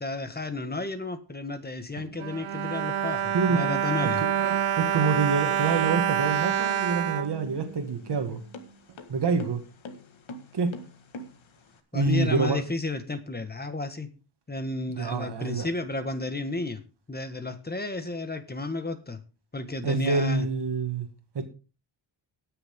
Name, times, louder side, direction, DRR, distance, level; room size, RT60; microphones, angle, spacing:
voice 1, 0.0-4.2 11.9-14.1 14.5-16.8 17.1-19.2 19.5-20.5, left 2 dB, 20° left, 1.5 m, -32 dB
Bowed string instrument, 2.0-8.2 8.9-9.0 9.3-9.4, right 10 dB, 85° right, 0.8 m, -27 dB
voice 2, 4.8-8.4 9.1-9.6 10.5-10.7 11.9-12.6 14.9-15.7 19.8-21.1 21.4-21.5, right 4 dB, 60° right, 1.8 m, -26 dB
sound 1, 7.2-11.8, left 2 dB, 75° left, 1.7 m, -45 dB
20.0 x 6.8 x 3.7 m
wide cardioid pair, 135°, 47 cm